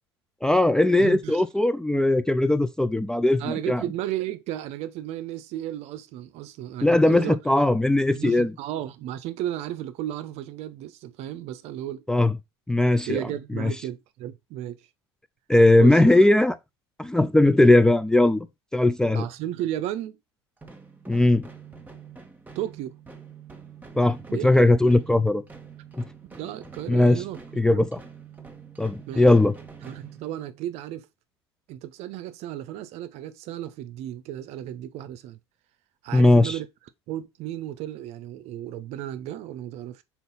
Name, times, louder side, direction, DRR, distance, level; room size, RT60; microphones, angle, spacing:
voice 1, 0.4-3.8 6.8-8.5 12.1-12.3 12.7-13.2 13.5-13.7 15.5-16.6 17.0-18.5 18.7-19.3 21.1-21.5 24.0-24.2 24.4-25.4 26.0-26.1 26.9-27.2 27.6-27.9 28.8-29.5 36.1-36.6, left 2 dB, 5° left, 0.5 m, -19 dB
voice 2, 1.0-1.4 3.4-7.4 8.1-12.0 13.1-14.8 15.8-16.0 19.1-20.2 22.5-22.9 24.3-24.5 26.3-27.9 29.1-29.3 29.8-31.1 31.7-35.4 36.0-36.7 37.1-40.0, right 12 dB, 50° right, 0.7 m, -34 dB
sound 1, 20.6-30.7, right 5 dB, 10° right, 1.4 m, -46 dB
5.5 x 4.3 x 4.1 m
figure-of-eight pair, 80°, 15 cm